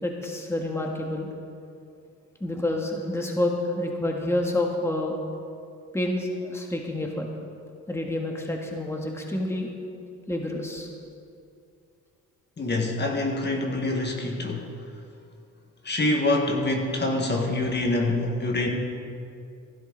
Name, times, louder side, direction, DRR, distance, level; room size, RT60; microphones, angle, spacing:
voice 1, 0.0-1.3 2.4-5.1 5.9-7.3 7.9-9.7 10.3-10.9, left 1 dB, 10° left, 0 dB, 1.7 m, -28 dB
voice 2, 12.6-14.7 15.8-18.7, left 2 dB, 35° left, 1 dB, 1.7 m, -25 dB
15.5 x 12.0 x 4.0 m, 2.5 s
cardioid pair, 90°, 30 cm